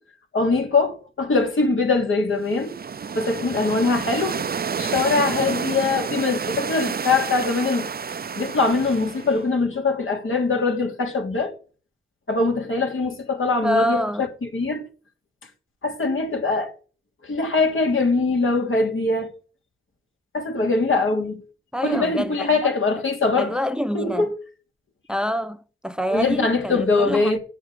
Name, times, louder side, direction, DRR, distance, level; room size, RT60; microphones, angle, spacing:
voice 1, 0.3-2.7 3.1-4.4 4.8-7.9 8.4-11.5 12.3-14.8 15.8-16.7 17.2-19.3 20.3-21.4 21.8-23.5 23.9-24.3 26.1-27.4, left 3 dB, 70° left, 3.0 m, -22 dB
sound 1, 2.4-9.5, right 6 dB, 45° right, 0.6 m, -29 dB
voice 2, 13.6-14.3 21.7-22.5 23.4-24.3 25.1-27.4, equal, 5° right, 0.9 m, -26 dB
8.8 x 6.4 x 7.8 m
cardioid pair, 45°, 21 cm